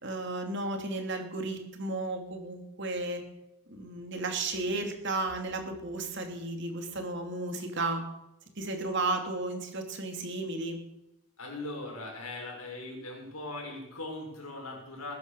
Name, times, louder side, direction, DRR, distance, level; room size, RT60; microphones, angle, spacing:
voice 1, 0.0-3.2 3.7-8.0 8.6-10.8, right 2 dB, 55° right, 4 dB, 2.9 m, -33 dB
voice 2, 11.4-15.1, left 2 dB, 80° left, 0 dB, 6.6 m, -40 dB
21.0 x 10.5 x 6.7 m, 0.88 s
head